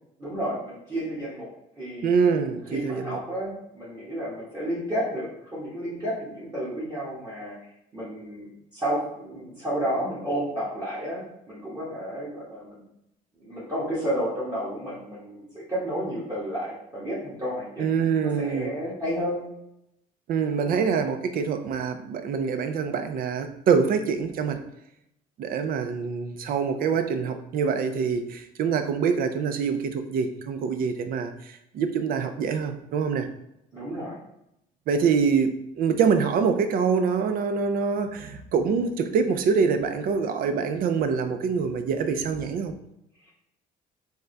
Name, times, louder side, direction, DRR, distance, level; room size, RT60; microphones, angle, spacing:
voice 1, 0.2-1.5 1.8-2.1 2.7-7.6 7.9-12.8 13.4-19.4 33.7-34.2, equal, 25° right, -7 dB, 1.3 m, -31 dB
voice 2, 2.0-3.2 17.8-18.7 20.3-24.6 25.4-33.3 34.9-42.7, right 6 dB, 60° right, 9 dB, 0.5 m, -25 dB
3.5 x 2.8 x 3.2 m, 0.82 s
cardioid pair, 110°, 17 cm